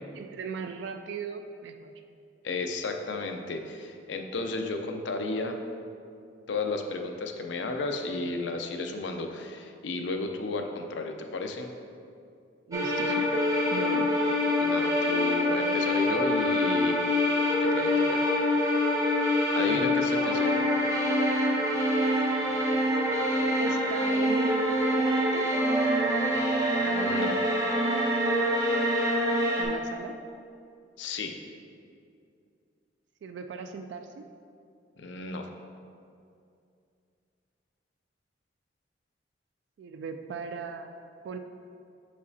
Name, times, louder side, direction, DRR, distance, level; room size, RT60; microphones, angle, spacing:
voice 1, 0.1-1.9 12.7-14.1 19.6-19.9 23.6-24.6 25.0-25.5 29.6-30.2 33.2-34.3 39.8-40.9 41.2-41.4, right 5 dB, 75° right, 7 dB, 0.3 m, -37 dB
voice 2, 2.4-5.6 6.5-11.7 14.6-17.0 17.6-18.4 19.0-20.7 26.8-27.4 31.0-31.4 35.0-35.5, left 3 dB, 85° left, 4 dB, 0.5 m, -33 dB
sound 1, 12.7-29.6, left 1 dB, 20° right, 0.8 m, -25 dB
7.0 x 5.1 x 2.7 m, 2.5 s
head